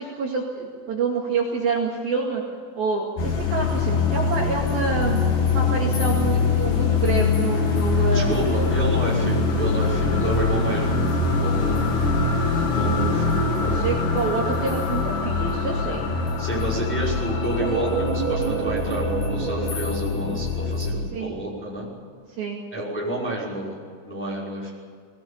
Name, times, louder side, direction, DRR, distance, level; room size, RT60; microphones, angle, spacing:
voice 1, 0.0-2.4 2.8-5.2 5.5-8.7 13.6-16.1 21.1-21.4 22.4-22.6, right 4 dB, 55° right, -1 dB, 3.6 m, -27 dB
sound 1, 3.2-20.9, left 4 dB, 60° left, 4.7 m, -23 dB
voice 2, 8.1-11.8 12.7-13.9 16.4-21.9 22.7-24.7, right 1 dB, ahead, -5 dB, 4.9 m, -29 dB
sound 2, 17.6-21.2, right 10 dB, 85° right, 3.8 m, -30 dB
21.0 x 18.5 x 8.6 m, 2.1 s
omnidirectional pair, 5.6 m